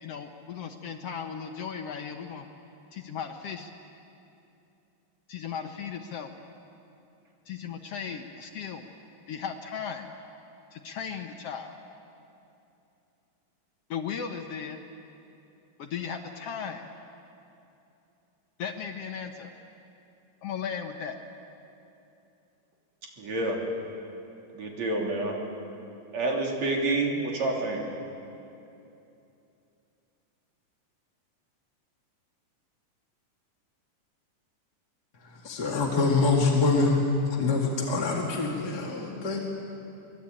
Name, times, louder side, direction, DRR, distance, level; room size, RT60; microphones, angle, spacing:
voice 1, 0.0-2.5 2.9-3.7 5.3-6.3 7.5-8.9 9.3-10.1 10.7-11.8 13.9-14.8 15.8-16.9 18.6-19.5 20.4-21.2, left 7 dB, 65° left, 5 dB, 1.7 m, -36 dB
voice 2, 23.2-23.6 24.5-25.4 26.1-27.8, right 2 dB, 60° right, -1 dB, 4.3 m, -28 dB
voice 3, 35.4-37.0 37.3-39.4, left 3 dB, 35° left, -2 dB, 2.3 m, -25 dB
25.0 x 21.0 x 8.8 m, 2.8 s
omnidirectional pair, 3.6 m